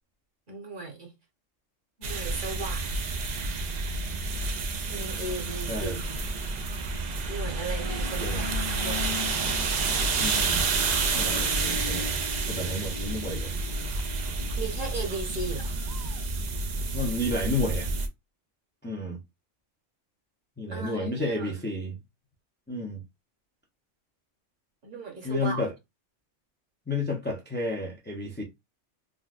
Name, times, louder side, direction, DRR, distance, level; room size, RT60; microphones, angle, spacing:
voice 1, 0.5-1.1 2.0-2.9 4.9-6.2 7.2-9.0 14.6-15.8 20.7-21.5 24.8-25.6, right 3 dB, 45° right, 1.0 m, -36 dB
sound 1, 2.0-18.1, right 3 dB, 65° right, 0.4 m, -29 dB
voice 2, 5.7-6.0 8.2-8.4 10.1-10.8 11.1-12.1 12.5-13.5 16.9-17.9 18.8-19.2 20.6-21.9 22.7-23.0 25.2-25.7 26.9-28.4, left 2 dB, 15° left, 0.4 m, -31 dB
sound 2, 7.8-15.2, left 8 dB, 55° left, 0.8 m, -41 dB
3.8 x 2.2 x 2.4 m
omnidirectional pair, 1.3 m